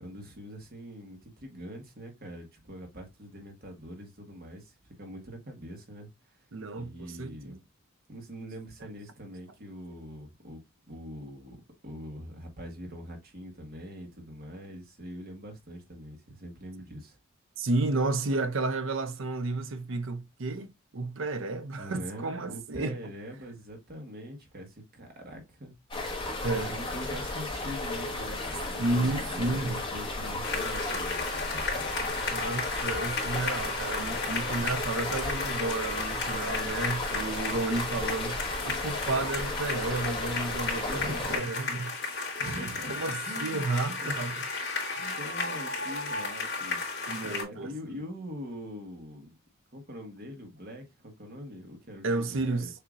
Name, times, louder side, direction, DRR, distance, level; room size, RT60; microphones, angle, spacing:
voice 1, 0.0-6.4 6.7-7.5 8.1-10.6 10.9-11.6 11.8-17.2 21.8-25.7 26.7-32.2 40.9-41.5 42.4-43.7 44.0-44.3 45.1-46.8 47.2-49.3 49.7-52.7, equal, 45° right, 1.4 m, -43 dB
voice 2, 6.5-7.6 17.6-23.0 26.4-26.8 28.8-29.8 32.3-41.9 42.4-44.4 45.0-45.2 47.1-48.0 52.0-52.7, right 2 dB, 60° right, 0.6 m, -32 dB
sound 1, 25.9-41.4, left 2 dB, 25° left, 1.4 m, -34 dB
sound 2, 30.4-47.4, left 3 dB, 50° left, 2.3 m, -34 dB
6.7 x 2.8 x 2.5 m
head